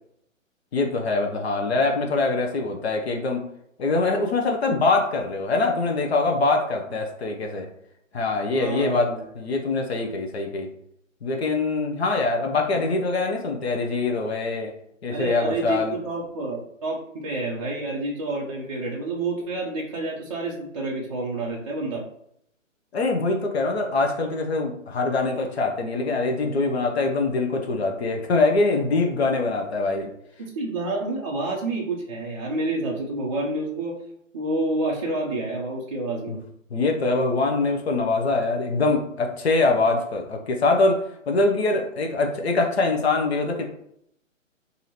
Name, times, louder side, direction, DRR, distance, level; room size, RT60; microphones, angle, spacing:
voice 1, 0.7-3.4 3.8-7.7 8.1-10.7 11.2-14.7 15.0-15.9 22.9-30.1 36.3-36.4 36.7-43.7, left 3 dB, 50° left, 2 dB, 0.7 m, -23 dB
voice 2, 8.5-9.2 15.1-22.0 29.9-30.1 30.4-33.9 34.3-36.3, right 2 dB, 30° right, -4 dB, 0.4 m, -29 dB
2.8 x 2.7 x 4.1 m, 0.74 s
figure-of-eight pair, 135°, 40 cm